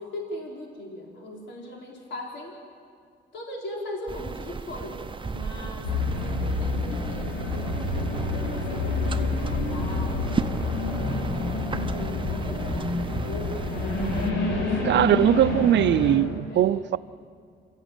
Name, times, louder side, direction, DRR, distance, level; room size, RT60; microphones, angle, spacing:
voice 1, 0.0-2.6 3.3-10.5 11.0-14.8 15.3-15.7 16.5-16.8, left 1 dB, 65° left, 4.5 m, -40 dB
sound 1, 4.1-14.3, right 4 dB, 25° right, 0.8 m, -35 dB
sound 2, 5.8-16.2, left 3 dB, 80° left, 5.3 m, -28 dB
voice 2, 14.9-17.0, right 12 dB, 65° right, 0.6 m, -21 dB
28.0 x 14.0 x 8.9 m
cardioid pair, 90°, 20 cm